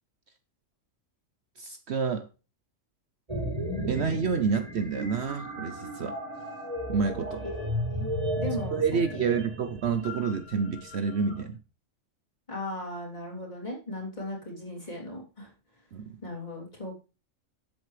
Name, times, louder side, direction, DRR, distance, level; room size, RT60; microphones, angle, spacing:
voice 1, 1.6-2.2 3.9-6.2 6.9-7.4 8.7-11.6 15.9-16.2, right 5 dB, 60° right, 9 dB, 0.9 m, -28 dB
sound 1, 3.3-11.4, equal, 30° right, 3.3 m, -35 dB
voice 2, 7.4-8.1 8.4-9.4 12.5-15.5 16.2-17.0, left 1 dB, 35° left, -2 dB, 3.5 m, -37 dB
12.0 x 8.0 x 3.2 m, 0.32 s
omnidirectional pair, 1.4 m